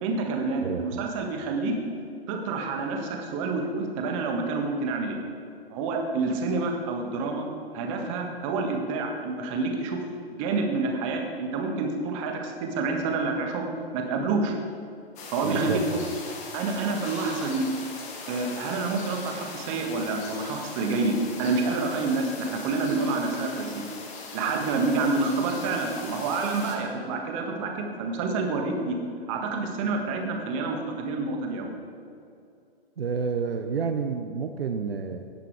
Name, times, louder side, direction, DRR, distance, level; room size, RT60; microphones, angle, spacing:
voice 1, 0.0-1.7 2.3-5.2 5.7-7.5 7.7-10.0 10.3-14.5 15.3-16.0 16.5-17.6 18.3-23.8 24.3-28.9 29.3-31.7, right 3 dB, 30° right, 2 dB, 1.6 m, -28 dB
voice 2, 0.6-1.1 15.4-16.1 33.0-35.2, right 5 dB, 70° right, 6 dB, 0.8 m, -30 dB
sound 1, 15.2-26.8, left 3 dB, 20° left, 1.5 m, -40 dB
17.0 x 5.8 x 4.8 m, 2.5 s
figure-of-eight pair, 125°, 31 cm